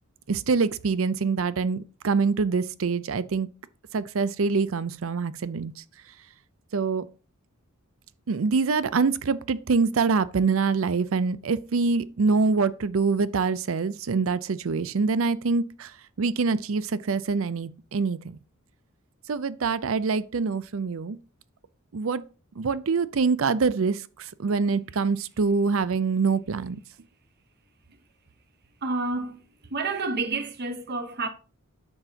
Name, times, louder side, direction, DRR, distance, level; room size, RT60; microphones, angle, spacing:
voice 1, 0.3-3.5 3.9-5.7 6.7-7.1 8.3-18.4 19.3-21.2 21.9-22.2 22.6-26.8, right 4 dB, 70° right, 0.5 m, -25 dB
voice 2, 28.8-29.4 29.7-31.3, right 3 dB, 50° right, 1.0 m, -29 dB
9.4 x 6.9 x 2.8 m
head